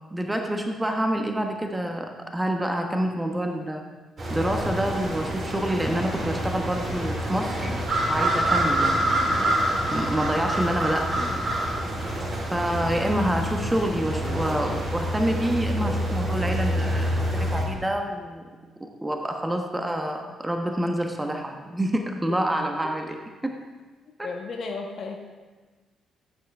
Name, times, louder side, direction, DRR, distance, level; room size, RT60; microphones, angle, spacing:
voice 1, 0.1-3.8 4.3-7.7 8.1-9.5 9.9-11.4 12.0-12.1 12.5-18.5 18.8-23.6, right 1 dB, 15° right, 3 dB, 1.2 m, -27 dB
sound 1, 4.2-17.6, right 1 dB, 45° right, 3.7 m, -27 dB
voice 2, 24.2-25.2, left 4 dB, 50° left, 1 dB, 1.3 m, -33 dB
16.5 x 9.0 x 3.5 m, 1.3 s
figure-of-eight pair, 40°, 0 cm